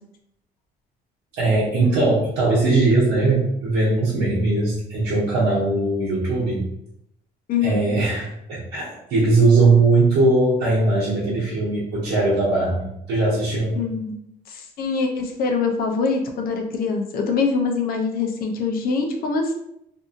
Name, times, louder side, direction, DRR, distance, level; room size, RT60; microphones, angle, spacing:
voice 1, 1.4-6.6 7.6-13.8, right 2 dB, 80° right, -7 dB, 0.9 m, -20 dB
voice 2, 13.8-14.1 14.5-19.5, left 4 dB, 60° left, 3 dB, 0.6 m, -24 dB
2.6 x 2.6 x 2.4 m, 0.78 s
cardioid pair, 110°, 17 cm